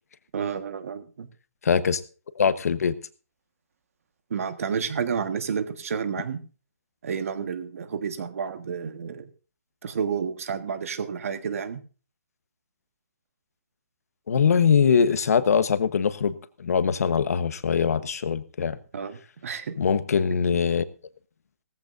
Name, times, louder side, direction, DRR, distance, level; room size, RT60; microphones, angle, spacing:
voice 1, 0.3-1.3 4.3-6.4 7.0-9.3 9.8-11.8 18.9-19.8, right 6 dB, 55° right, 10 dB, 1.5 m, -30 dB
voice 2, 1.6-2.0 2.4-2.9 14.3-16.3 16.6-18.8 19.8-20.8, left 6 dB, 65° left, 13 dB, 1.1 m, -22 dB
17.5 x 14.5 x 2.6 m, 0.36 s
hypercardioid pair, 160°, 9 cm